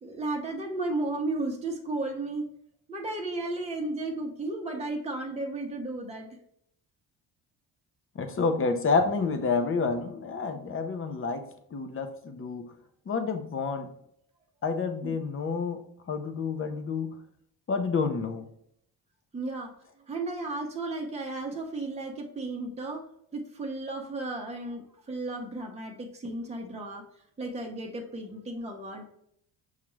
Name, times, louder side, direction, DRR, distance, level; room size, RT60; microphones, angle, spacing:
voice 1, 0.0-2.5 2.9-6.3 15.0-15.2 19.3-19.7 20.1-23.0 23.3-27.0 27.4-29.0, right 2 dB, 15° right, 0 dB, 0.8 m, -34 dB
voice 2, 8.2-11.4 11.7-12.7 13.1-13.9 14.6-17.2 17.7-18.5, left 4 dB, 30° left, 7 dB, 0.7 m, -29 dB
5.7 x 2.4 x 3.1 m, 0.70 s
supercardioid pair, 75°, 42 cm